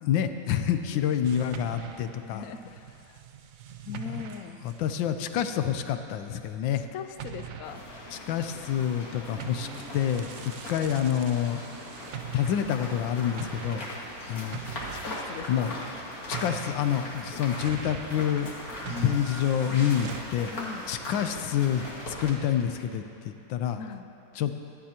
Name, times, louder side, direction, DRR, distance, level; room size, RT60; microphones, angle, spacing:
voice 1, 0.0-2.4 4.1-4.2 4.6-6.8 8.1-9.7 9.9-11.6 12.3-13.9 14.3-14.6 15.5-15.7 16.3-18.5 18.8-20.5 20.9-23.8 24.3-24.6, left 9 dB, 90° left, 8 dB, 1.4 m, -28 dB
sound 1, 1.2-6.8 7.2-20.2, right 8 dB, 65° right, 0.8 m, -43 dB
voice 2, 2.3-2.7 3.8-4.6 6.8-7.9 14.9-15.8 18.9-19.2 20.5-20.8 23.8-24.1, left 6 dB, 70° left, 9 dB, 0.8 m, -40 dB
sound 2, 7.6-22.3, left 1 dB, 50° left, 2.4 m, -40 dB
24.0 x 11.0 x 2.9 m, 2.8 s
omnidirectional pair, 2.0 m